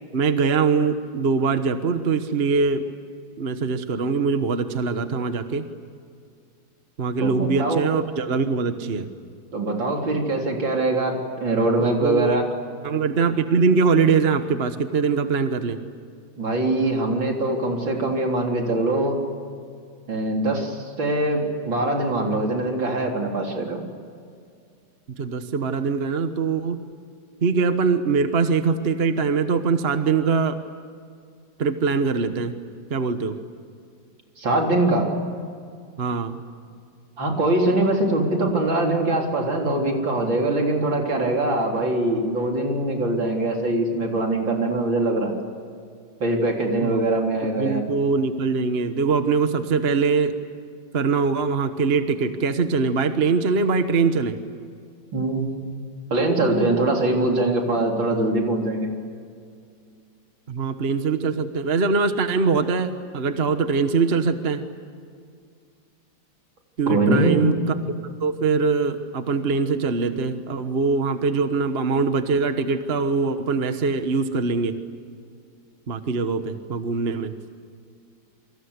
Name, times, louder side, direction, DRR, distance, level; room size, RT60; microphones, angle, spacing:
voice 1, 0.1-2.9 3.4-5.6 7.0-9.1 11.8-12.4 12.8-15.8 25.2-26.8 27.4-30.6 31.6-32.5 32.9-33.3 36.0-36.4 46.8-47.0 47.6-50.4 50.9-54.4 60.5-64.7 66.8-67.5 68.2-74.7 75.9-77.3, right 4 dB, 35° right, 8 dB, 1.3 m, -22 dB
voice 2, 7.2-7.8 9.5-12.4 16.4-19.2 20.1-23.8 34.4-35.1 37.2-45.4 46.2-47.8 55.1-55.7 56.1-58.9 66.9-67.4, right 2 dB, 70° right, 1 dB, 4.5 m, -22 dB
28.0 x 24.5 x 8.2 m, 2.2 s
omnidirectional pair, 2.2 m